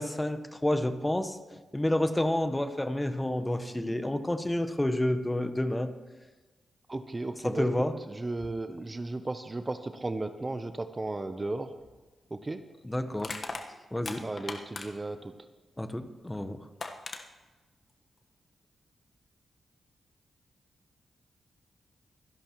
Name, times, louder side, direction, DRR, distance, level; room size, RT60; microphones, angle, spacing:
voice 1, 0.0-1.4 1.7-5.9 7.4-7.9 12.8-13.3 13.9-14.2 15.8-16.6, left 1 dB, 15° left, 10 dB, 1.1 m, -29 dB
voice 2, 6.9-11.7 12.3-12.6 14.2-15.5, right 2 dB, 25° right, 9 dB, 0.8 m, -35 dB
Crushing, 11.8-12.0 13.2-15.1 16.3-16.4 16.8-17.2, left 3 dB, 50° left, 1.3 m, -38 dB
25.5 x 11.0 x 3.1 m, 1.2 s
cardioid pair, 60°, 0 cm